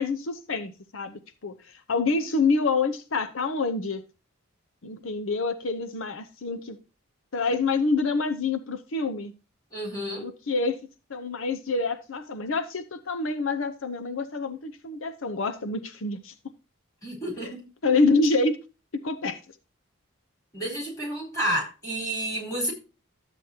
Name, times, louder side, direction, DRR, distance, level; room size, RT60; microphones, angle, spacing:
voice 1, 0.0-4.0 4.8-6.8 7.3-9.3 10.2-10.8 11.1-16.3 17.4-17.5 17.8-18.6 19.0-19.4, left 3 dB, 75° left, 0.8 m, -27 dB
voice 2, 9.7-10.3 17.0-17.6 20.5-22.7, right 1 dB, 15° left, 4.4 m, -30 dB
12.5 x 8.1 x 2.9 m
head